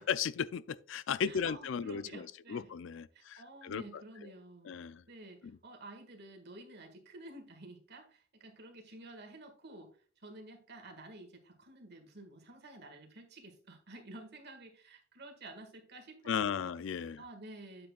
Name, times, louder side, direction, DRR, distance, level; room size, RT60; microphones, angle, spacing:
voice 1, 0.0-4.0 4.7-5.0 16.3-17.2, left 7 dB, 70° left, 0.4 m, -36 dB
voice 2, 1.2-2.7 3.1-4.8 5.1-9.9 10.2-16.7 17.2-17.9, right 2 dB, 55° right, 1.8 m, -51 dB
9.4 x 7.5 x 2.4 m
head